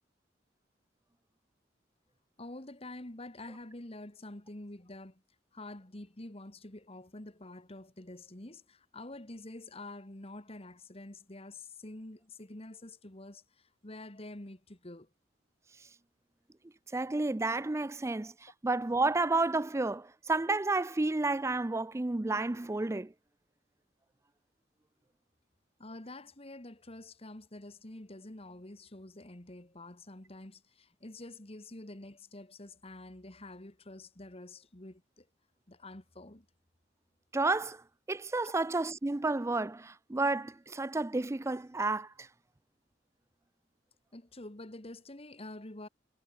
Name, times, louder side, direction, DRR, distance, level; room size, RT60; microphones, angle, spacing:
voice 1, 2.4-5.2 5.5-15.1 25.8-35.3 35.7-36.5 44.1-45.9, left 2 dB, 35° left, 1.9 m, -47 dB
voice 2, 16.9-23.1 37.3-37.8 38.1-42.3, right 3 dB, 15° right, 0.4 m, -31 dB
head